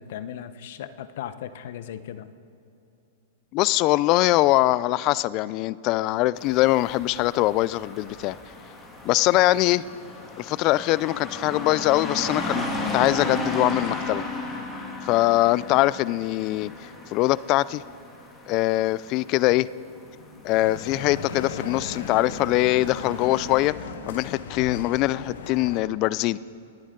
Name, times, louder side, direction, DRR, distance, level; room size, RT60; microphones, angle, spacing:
voice 1, 0.0-2.3 24.6-24.9, left 9 dB, 65° left, 13 dB, 0.8 m, -37 dB
voice 2, 3.5-8.4 9.0-9.8 10.4-14.2 15.0-17.8 18.5-19.7 20.4-23.7 24.1-26.4, left 17 dB, 40° left, 20 dB, 0.4 m, -22 dB
sound 1, 6.4-23.7, left 2 dB, 20° left, 2.6 m, -35 dB
sound 2, 20.4-25.8, left 5 dB, 80° left, 1.6 m, -38 dB
28.5 x 9.9 x 3.8 m, 2.7 s
hypercardioid pair, 130°, 0 cm